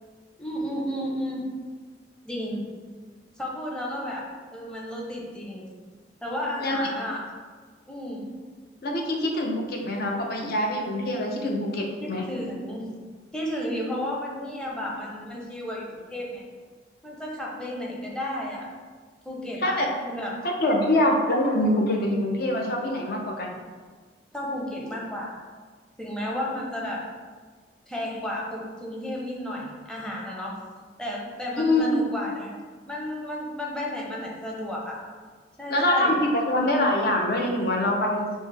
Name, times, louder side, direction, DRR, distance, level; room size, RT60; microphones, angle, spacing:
voice 1, 0.4-1.4 2.2-2.6 3.4-5.7 6.2-7.3 7.9-8.2 12.0-12.9 13.3-16.4 17.0-18.7 19.2-20.3 24.3-25.4 26.0-27.0 27.9-30.5 31.0-32.6 32.9-35.0 35.6-36.2, left 1 dB, 5° left, -4 dB, 0.6 m, -32 dB
voice 2, 8.8-12.2 19.6-19.9 20.4-23.5 31.6-32.0 35.7-38.2, left 1 dB, 60° left, 0 dB, 0.6 m, -24 dB
5.4 x 2.1 x 3.3 m, 1.5 s
head